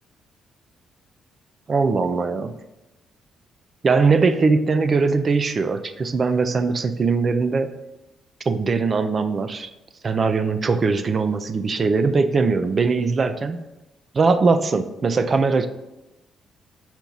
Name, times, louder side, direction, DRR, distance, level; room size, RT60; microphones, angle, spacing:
voice 1, 1.7-2.6 3.8-7.7 8.4-9.7 10.0-13.6 14.1-15.7, right 4 dB, 40° right, 10 dB, 0.5 m, -20 dB
7.0 x 4.4 x 3.9 m, 1.0 s
cardioid pair, 90°, 0 cm